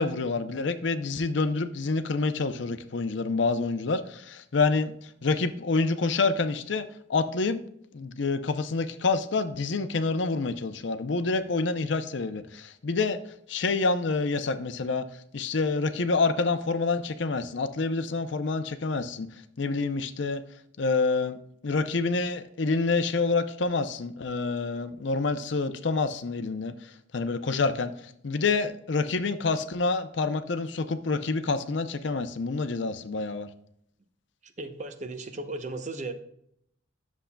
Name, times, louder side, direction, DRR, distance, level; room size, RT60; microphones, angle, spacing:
voice 1, 0.0-7.6 7.9-13.2 13.5-15.1 15.3-19.3 19.6-20.4 20.8-21.4 21.6-26.7 27.1-27.9 28.2-33.5, left 3 dB, 65° left, 10 dB, 0.6 m, -27 dB
voice 2, 34.6-36.1, right 2 dB, 40° right, 8 dB, 0.7 m, -35 dB
10.0 x 7.0 x 2.3 m, 0.70 s
head